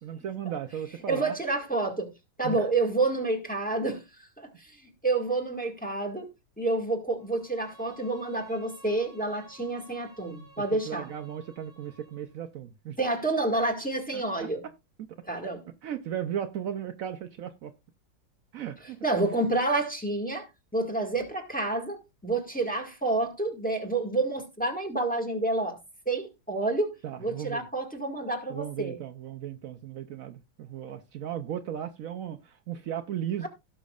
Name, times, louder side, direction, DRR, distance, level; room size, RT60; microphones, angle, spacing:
voice 1, 0.0-1.4 2.4-2.7 10.7-13.0 14.1-14.7 15.0-15.2 15.7-17.7 18.5-19.0 27.0-27.7 28.5-33.5, right 9 dB, 85° right, 0.7 m, -36 dB
voice 2, 1.1-2.1 2.4-4.0 4.4-4.7 5.0-6.3 6.6-11.1 13.0-14.6 15.3-15.6 19.0-20.4 20.7-25.8 26.0-26.9 27.2-29.0, right 2 dB, 5° left, 1.7 m, -29 dB
Bowed string instrument, 7.2-12.3, right 2 dB, 50° left, 4.8 m, -55 dB
17.0 x 6.2 x 2.4 m
omnidirectional pair, 2.2 m